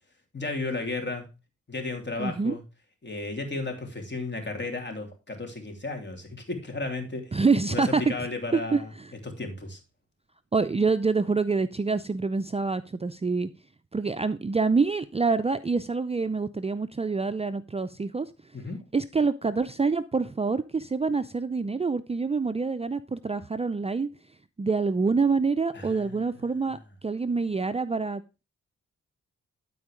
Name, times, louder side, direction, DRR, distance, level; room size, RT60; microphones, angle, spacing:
voice 1, 0.3-1.3 1.7-2.6 3.0-7.4 7.7-8.9 9.2-9.8 18.5-18.8 25.7-26.7, left 3 dB, 40° left, 4 dB, 3.1 m, -34 dB
voice 2, 2.2-2.6 7.3-8.0 8.5-9.1 10.5-13.5 13.9-18.3 18.9-24.1 24.6-28.4, right 4 dB, 20° right, 12 dB, 0.5 m, -26 dB
12.0 x 4.6 x 5.0 m, 0.29 s
cardioid pair, 60°, 29 cm